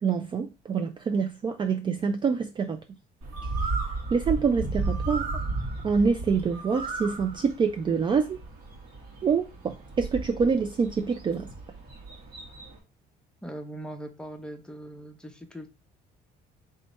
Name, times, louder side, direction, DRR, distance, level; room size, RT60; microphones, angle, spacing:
voice 1, 0.0-2.8 4.1-5.3 5.8-8.4 9.2-11.5, right 5 dB, 30° right, 0.4 m, -26 dB
Bird, 3.2-12.8, right 3 dB, 65° right, 1.9 m, -34 dB
voice 2, 13.4-15.7, right 1 dB, 5° left, 0.8 m, -40 dB
3.3 x 3.2 x 4.1 m
cardioid pair, 110°, 17 cm